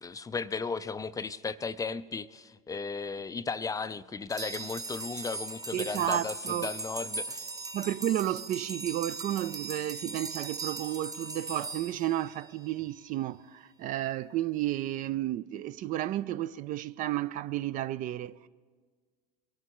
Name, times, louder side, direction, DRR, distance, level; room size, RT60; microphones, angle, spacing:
voice 1, 0.0-7.5, left 4 dB, 20° left, 0.4 m, -35 dB
sound 1, 4.3-12.8, right 3 dB, 20° right, 0.7 m, -39 dB
voice 2, 5.7-6.7 7.7-18.5, right 13 dB, 45° right, 0.4 m, -32 dB
21.5 x 13.0 x 3.0 m
hypercardioid pair, 80°, 19 cm